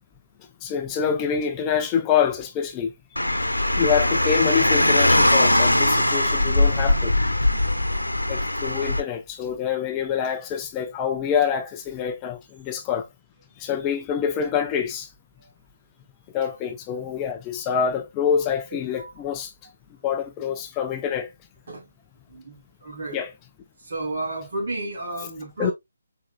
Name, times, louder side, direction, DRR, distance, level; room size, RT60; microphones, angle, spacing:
voice 1, 0.6-2.9 3.6-7.1 8.3-13.1 13.6-15.1 16.3-19.5 20.0-21.3 23.1-23.3 25.6-25.7, left 7 dB, 20° left, 0.6 m, -26 dB
Car, 3.2-9.0, left 1 dB, 90° left, 1.0 m, -20 dB
voice 2, 22.3-23.2 23.8-25.7, right 2 dB, 55° right, 2.5 m, -32 dB
6.0 x 3.9 x 2.3 m
figure-of-eight pair, 145°, 0 cm